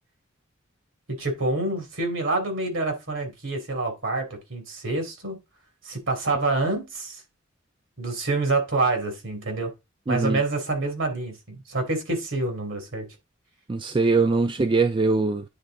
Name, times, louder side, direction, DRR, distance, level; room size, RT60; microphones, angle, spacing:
voice 1, 1.1-5.4 5.8-7.2 8.0-9.7 10.1-13.1, right 2 dB, 70° right, 2.6 m, -27 dB
voice 2, 10.1-10.4 13.7-15.4, right 3 dB, 25° right, 0.4 m, -22 dB
9.4 x 3.7 x 3.7 m
head